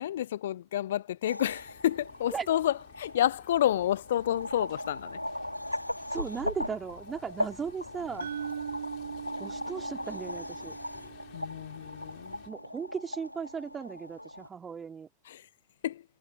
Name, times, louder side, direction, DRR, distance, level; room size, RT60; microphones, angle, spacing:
voice 1, 0.0-5.2 11.3-12.4 15.3-15.5 15.8-16.0, left 12 dB, 60° left, 0.6 m, -29 dB
sound 1, 1.2-14.5, left 1 dB, 85° left, 5.9 m, -39 dB
sound 2, 1.5-12.5, left 33 dB, 45° left, 6.7 m, -55 dB
voice 2, 6.1-8.3 9.4-10.7 12.5-15.1, right 6 dB, 20° right, 2.9 m, -37 dB
sound 3, 8.2-12.3, right 8 dB, 65° right, 4.1 m, -41 dB
figure-of-eight pair, 90°, 0 cm